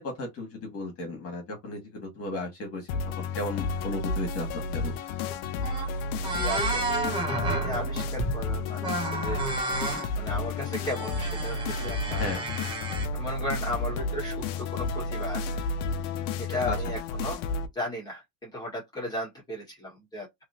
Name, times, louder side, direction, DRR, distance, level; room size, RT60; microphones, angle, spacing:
voice 1, 0.0-5.0 12.2-12.4 16.6-16.7, left 2 dB, 30° left, 1.7 m, -35 dB
sound 1, 2.9-17.7, left 3 dB, 55° left, 0.6 m, -31 dB
sound 2, 5.3-5.4 5.6-5.9 6.2-8.4 8.8-10.1 10.7-13.1, right 2 dB, 10° right, 0.3 m, -32 dB
voice 2, 6.3-9.4 10.2-12.3 13.1-15.5 16.5-17.4 17.7-20.4, left 1 dB, 10° left, 1.6 m, -36 dB
2.9 x 2.9 x 2.7 m
supercardioid pair, 155°, 46 cm